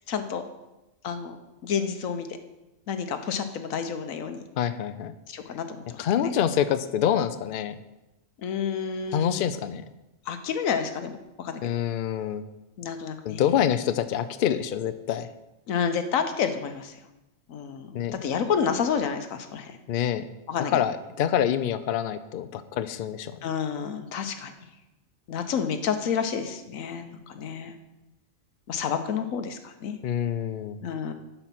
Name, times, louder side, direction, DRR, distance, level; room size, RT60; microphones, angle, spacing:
voice 1, 0.1-0.4 1.0-1.4 1.6-2.3 2.9-4.4 5.3-6.3 8.4-9.4 10.3-11.6 12.8-13.4 15.7-16.9 17.5-19.7 20.5-20.8 23.4-24.5 25.3-27.7 28.7-29.9 30.8-31.1, left 7 dB, 85° left, 8 dB, 1.2 m, -29 dB
voice 2, 4.6-5.1 6.0-7.7 9.1-9.8 11.6-12.4 13.2-15.3 17.9-18.2 19.9-20.3 20.6-23.5 30.0-30.8, left 9 dB, 60° left, 11 dB, 0.6 m, -26 dB
11.0 x 4.5 x 5.8 m, 0.99 s
omnidirectional pair, 1.4 m